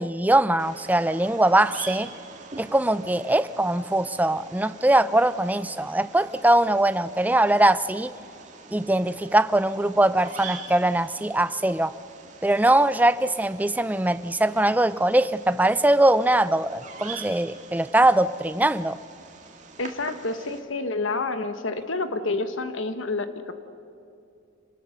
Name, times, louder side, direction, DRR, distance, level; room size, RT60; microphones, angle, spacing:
voice 1, 0.0-2.1 2.6-8.1 8.7-11.9 12.4-19.0, right 1 dB, 10° right, 15 dB, 0.4 m, -21 dB
Bird vocalization bird call bird song, 0.6-20.6, right 4 dB, 35° right, 2.1 m, -44 dB
voice 2, 19.8-23.5, left 3 dB, 80° left, 9 dB, 1.3 m, -29 dB
27.5 x 19.5 x 6.6 m, 2.6 s
head